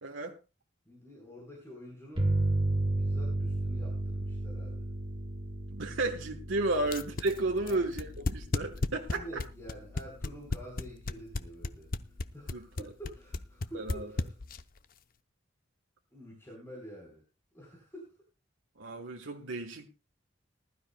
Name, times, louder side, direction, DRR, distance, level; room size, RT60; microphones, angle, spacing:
voice 1, 0.0-0.4 5.7-9.4 12.5-12.7 13.7-14.1 18.8-19.9, right 2 dB, 90° right, 1.2 m, -33 dB
voice 2, 0.9-2.3 2.9-4.9 7.6-7.8 8.8-11.9 12.3-14.3 16.1-17.2 17.5-18.1, equal, 15° left, 4.1 m, -48 dB
sound 1, 2.2-11.4, right 2 dB, 25° right, 1.8 m, -34 dB
sound 2, 6.9-14.8, left 2 dB, 45° left, 0.7 m, -33 dB
20.0 x 12.5 x 2.2 m
head